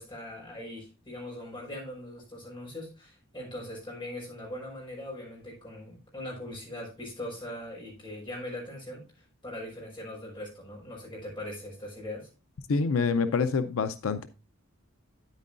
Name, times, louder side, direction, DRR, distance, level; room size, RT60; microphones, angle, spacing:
voice 1, 0.0-9.0 9.4-12.3, left 1 dB, 25° left, 5.1 m, -40 dB
voice 2, 12.7-14.3, left 5 dB, 90° left, 0.5 m, -26 dB
9.3 x 9.1 x 2.5 m
head